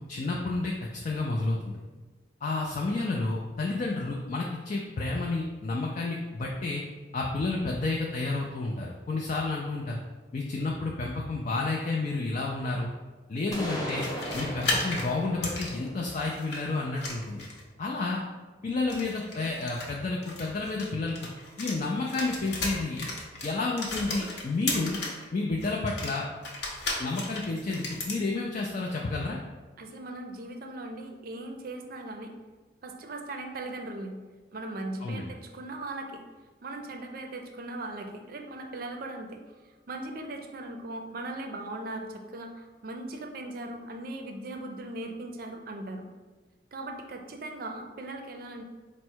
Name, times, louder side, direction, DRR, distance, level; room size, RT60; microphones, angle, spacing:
voice 1, 0.0-1.8 2.4-6.8 7.1-10.0 10.3-12.9 13.3-14.1 14.3-17.4 17.8-18.2 18.6-21.2 21.6-23.1 23.4-25.0 25.3-26.3 27.0-29.4 35.0-35.3, left 3 dB, 40° left, -1 dB, 0.4 m, -30 dB
sound 1, 13.5-17.3, equal, 20° left, 0.9 m, -38 dB
sound 2, 13.8-16.6 17.0-17.7 18.8-21.8 22.0-25.2 25.6-28.2, left 2 dB, 65° left, 0.9 m, -35 dB
voice 2, 29.8-32.3 32.8-34.2 34.5-36.2 36.6-39.4 39.9-46.0 46.7-48.6, right 2 dB, 55° right, 4 dB, 0.5 m, -39 dB
4.4 x 2.1 x 4.4 m, 1.3 s
head